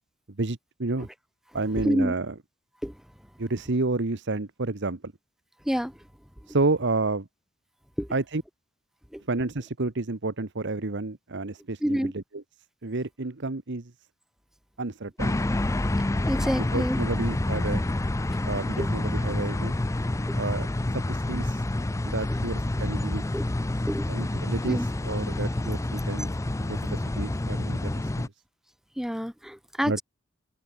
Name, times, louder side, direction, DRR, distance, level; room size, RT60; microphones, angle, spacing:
voice 1, 0.4-1.1 1.5-2.3 3.4-5.0 6.5-7.3 8.1-8.4 9.3-12.4 12.8-13.9 14.8-15.4 16.7-17.8 18.4-19.8 20.4-20.7 20.9-21.6 22.0-23.2 24.1-26.3 26.7-28.1 29.8-30.0, right 3 dB, 60° right, 1.2 m, -30 dB
voice 2, 11.8-12.1 16.1-17.0 18.8-18.9 20.3-20.4 23.3-23.4 23.9-24.1 24.7-24.9 29.0-30.0, equal, ahead, 1.0 m, -28 dB
sound 1, 15.2-28.3, left 1 dB, 15° left, 0.5 m, -28 dB
open air
head